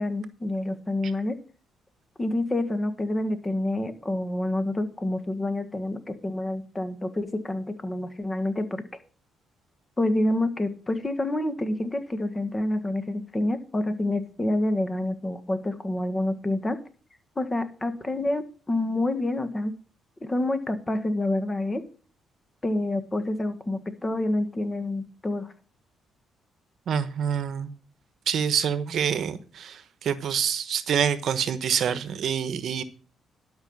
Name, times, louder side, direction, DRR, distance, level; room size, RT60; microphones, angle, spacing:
voice 1, 0.0-1.4 2.2-8.8 10.0-16.8 17.3-19.7 20.2-21.8 22.6-25.5, left 1 dB, 20° left, 1.6 m, -28 dB
voice 2, 26.9-27.7 28.3-32.8, right 8 dB, 65° right, 1.1 m, -26 dB
12.0 x 5.6 x 7.2 m
cardioid pair, 90°, 0 cm